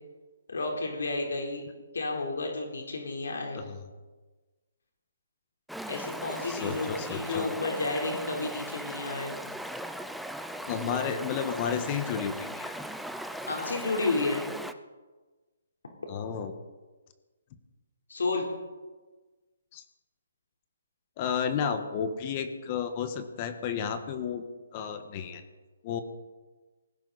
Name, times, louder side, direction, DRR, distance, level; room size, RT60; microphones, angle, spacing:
voice 1, 0.5-1.6 1.9-3.6 5.9-9.3 13.5-14.4 18.1-18.5, left 3 dB, 80° left, 1 dB, 3.8 m, -31 dB
Stream, 5.7-14.7, right 1 dB, ahead, 0.5 m, -38 dB
voice 2, 6.5-7.5 10.7-12.7 16.1-16.5 19.7-19.8 21.2-25.4 25.8-26.0, left 7 dB, 30° left, 9 dB, 1.3 m, -32 dB
19.5 x 16.0 x 4.2 m, 1.3 s
hypercardioid pair, 160°, 0 cm